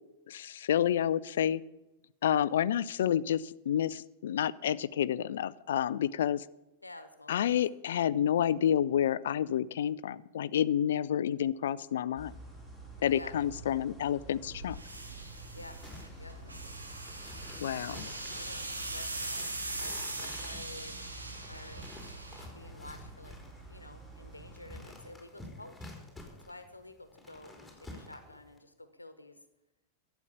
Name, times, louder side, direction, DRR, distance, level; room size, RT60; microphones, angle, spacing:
voice 1, 0.3-1.6 2.2-6.4 7.3-12.3 13.0-14.8 17.6-18.0, left 10 dB, 65° left, 19 dB, 0.4 m, -29 dB
voice 2, 6.8-7.6 13.1-13.3 15.5-15.8 16.2-16.4 17.7-19.5 19.8-21.0 21.5-21.8 22.5-23.4 23.7-25.9 26.4-29.4, left 2 dB, 85° left, 10 dB, 1.2 m, -50 dB
sound 1, 12.2-25.0, right 2 dB, 15° right, 5.5 m, -50 dB
sound 2, 14.4-23.1, right 2 dB, 85° right, 1.7 m, -41 dB
sound 3, 15.8-28.6, left 2 dB, 5° left, 3.7 m, -51 dB
12.0 x 8.2 x 8.7 m, 0.95 s
figure-of-eight pair, 95°, 0 cm